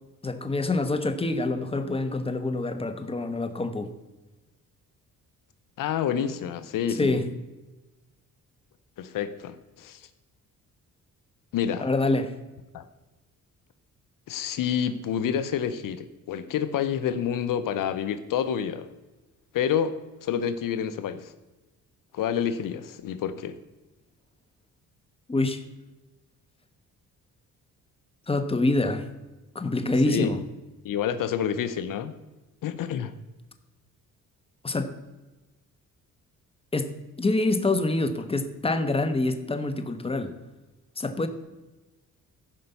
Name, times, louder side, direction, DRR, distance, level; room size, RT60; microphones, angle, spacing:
voice 1, 0.2-3.9 7.0-7.3 11.8-12.3 25.3-25.6 28.3-29.1 29.5-30.4 34.6-34.9 36.7-40.4 41.0-41.3, left 2 dB, 15° left, 8 dB, 1.2 m, -26 dB
voice 2, 5.8-7.2 9.0-10.0 11.5-11.9 12.7-12.9 14.3-18.9 19.5-21.3 22.1-23.6 30.1-30.3 30.8-32.1 32.6-33.1, left 8 dB, 70° left, 11 dB, 0.8 m, -28 dB
14.0 x 5.4 x 6.9 m, 1.1 s
cardioid pair, 80°, 34 cm